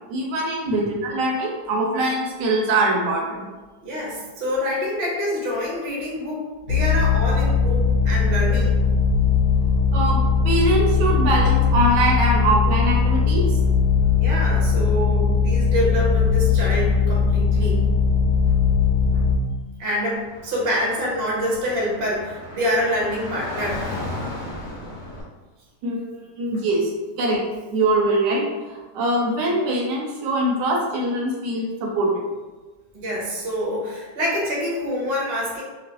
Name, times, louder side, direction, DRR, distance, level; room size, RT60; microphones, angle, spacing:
voice 1, 0.1-3.5 9.9-10.2 10.4-13.6 25.8-26.9 27.2-27.4 27.7-28.4 28.7-32.3, right 1 dB, 80° right, -1 dB, 1.2 m, -22 dB
voice 2, 3.8-8.8 14.1-17.9 19.8-23.9 32.9-35.6, equal, 45° right, -4 dB, 0.8 m, -26 dB
sound 1, 6.7-19.4, left 5 dB, 75° left, 1.2 m, -19 dB
Car / Traffic noise roadway noise, 20.2-25.2, left 2 dB, 45° left, 1.1 m, -35 dB
3.0 x 2.5 x 2.8 m, 1.2 s
omnidirectional pair, 1.9 m